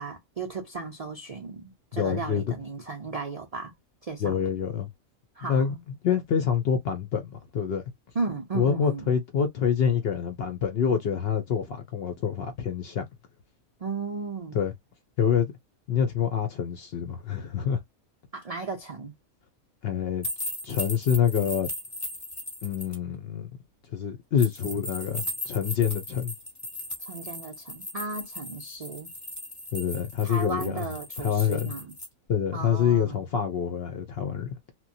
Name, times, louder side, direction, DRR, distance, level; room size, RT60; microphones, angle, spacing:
voice 1, 0.0-3.7 4.0-4.3 5.4-5.8 8.2-9.0 13.8-14.6 18.3-19.1 27.0-29.1 30.2-31.9 32.5-33.2, right 4 dB, 65° right, 0.3 m, -35 dB
voice 2, 1.9-2.4 4.2-4.9 5.5-5.8 6.0-7.8 8.5-13.0 14.5-14.7 15.2-15.5 15.9-17.8 19.8-20.3 20.6-21.7 22.6-23.5 23.9-26.3 29.7-30.9 31.2-31.7 32.3-34.5, left 8 dB, 65° left, 0.6 m, -26 dB
sound 1, 20.2-22.9 24.4-32.1, left 1 dB, 15° left, 0.8 m, -37 dB
2.9 x 2.2 x 2.6 m
omnidirectional pair, 1.4 m